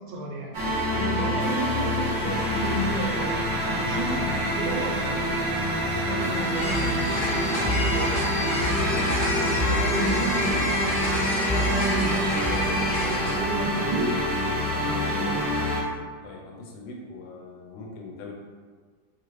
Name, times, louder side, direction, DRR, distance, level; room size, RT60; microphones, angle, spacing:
voice 1, 0.1-0.5 0.9-3.4 3.6-5.2 6.1-8.3 8.8-9.0 9.8-10.4 10.8-14.1 14.7-15.5, right 1 dB, 80° right, -1 dB, 1.3 m, -33 dB
sound 1, 0.5-15.8, equal, 50° right, 0.5 m, -26 dB
sound 2, 0.7-10.4, left 1 dB, 65° left, 1.2 m, -38 dB
voice 2, 6.1-8.0 9.6-10.7 16.2-18.3, left 2 dB, 90° left, 0 dB, 1.3 m, -41 dB
sound 3, 6.5-13.4, equal, 45° left, 0.4 m, -28 dB
3.0 x 2.5 x 3.1 m, 1.5 s
omnidirectional pair, 1.9 m